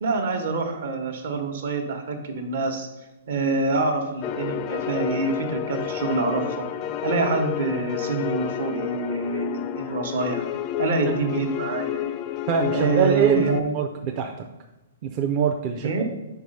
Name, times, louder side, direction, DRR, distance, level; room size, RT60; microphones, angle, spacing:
voice 1, 0.0-2.9 3.3-6.6 7.0-10.4 10.8-12.0 12.7-13.8 15.8-16.0, right 3 dB, 60° right, 5 dB, 1.1 m, -26 dB
sound 1, 4.2-13.6, left 10 dB, 30° left, 0.3 m, -30 dB
voice 2, 12.5-13.5 13.7-14.5 15.0-16.0, right 6 dB, 30° right, 3 dB, 0.5 m, -24 dB
4.8 x 4.6 x 5.3 m, 1.0 s
hypercardioid pair, 155°, 0 cm